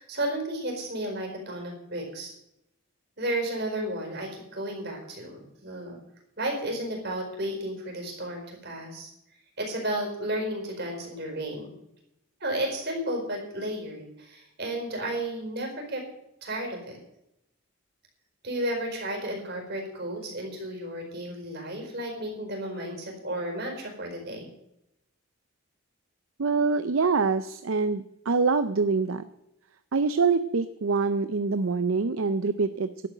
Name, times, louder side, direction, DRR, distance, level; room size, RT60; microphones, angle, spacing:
voice 1, 0.0-2.3 3.2-6.0 6.4-9.1 9.6-11.7 12.4-16.0 16.4-17.0 18.4-24.5, right 1 dB, 50° right, 2 dB, 4.6 m, -33 dB
voice 2, 26.4-29.2 29.9-33.1, right 4 dB, 65° right, 12 dB, 0.5 m, -25 dB
12.0 x 7.9 x 9.0 m, 0.83 s
head